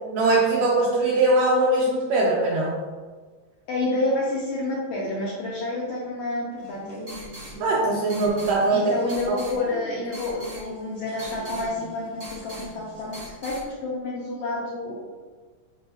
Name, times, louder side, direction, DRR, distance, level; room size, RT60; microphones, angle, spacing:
voice 1, 0.1-2.8 7.6-8.9, right 2 dB, 85° right, -3 dB, 1.4 m, -21 dB
voice 2, 3.7-7.0 8.7-14.9, left 2 dB, 80° left, -5 dB, 1.3 m, -29 dB
sound 1, 6.6-13.6, right 1 dB, 50° right, 0.9 m, -41 dB
5.6 x 2.9 x 2.7 m, 1.4 s
omnidirectional pair, 3.4 m